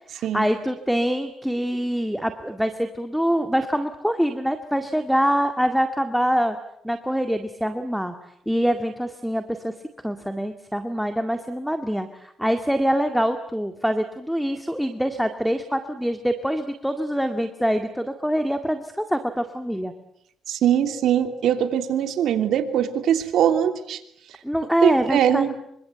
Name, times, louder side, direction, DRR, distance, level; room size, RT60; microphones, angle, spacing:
voice 1, 0.1-6.6 6.8-8.1 8.5-9.7 10.0-19.9 24.4-25.5, equal, ahead, 6 dB, 2.1 m, -24 dB
voice 2, 20.5-24.0 24.3-24.4 24.8-25.5, right 9 dB, 75° right, 7 dB, 3.0 m, -21 dB
27.5 x 25.0 x 8.1 m, 0.75 s
cardioid pair, 90°, 0 cm